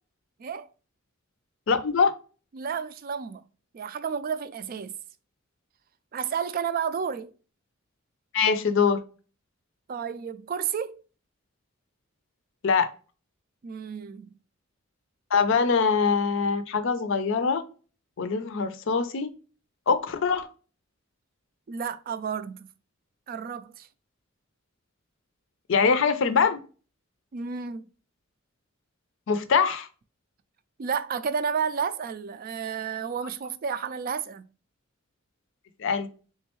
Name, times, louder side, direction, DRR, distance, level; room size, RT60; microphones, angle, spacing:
voice 1, 1.7-2.2 8.3-9.0 12.6-12.9 15.3-17.6 18.2-19.3 19.9-20.5 25.7-26.6 29.3-29.9 35.8-36.1, left 5 dB, 65° left, 0.5 m, -23 dB
voice 2, 2.5-3.4 3.7-4.9 6.1-7.3 9.9-11.0 13.6-14.3 21.7-22.7 23.3-23.9 27.3-27.9 30.8-34.5, right 6 dB, 45° right, 0.3 m, -31 dB
3.6 x 3.1 x 2.9 m
head